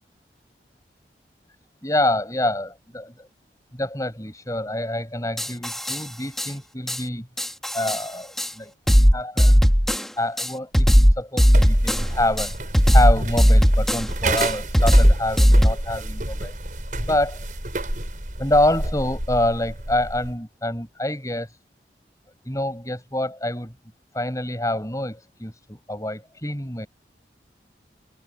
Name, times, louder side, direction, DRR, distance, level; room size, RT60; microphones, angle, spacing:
voice 1, 1.8-3.3 3.7-7.3 7.7-8.7 9.1-9.7 10.2-16.5 17.0-17.5 18.4-21.6 22.4-23.7 24.1-26.9, left 1 dB, 20° left, 6.4 m, -26 dB
sound 1, 5.4-6.0 6.4-6.5 6.9-7.0 7.4-8.0 8.4-8.5 8.9-10.1 10.4-12.1 12.4-14.1 14.4-15.7, equal, ahead, 1.2 m, -16 dB
sound 2, 11.4-20.4, right 2 dB, 50° right, 6.5 m, -30 dB
head